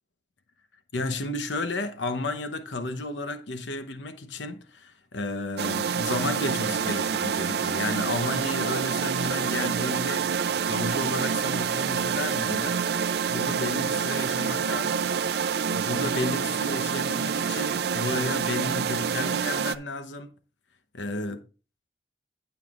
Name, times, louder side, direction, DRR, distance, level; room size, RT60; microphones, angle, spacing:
voice 1, 0.9-12.8 13.3-15.1 15.7-20.3 20.9-21.4, left 2 dB, 90° left, 0.9 m, -32 dB
sound 1, 5.6-19.7, right 6 dB, 60° right, 0.4 m, -27 dB
16.0 x 5.7 x 2.4 m
head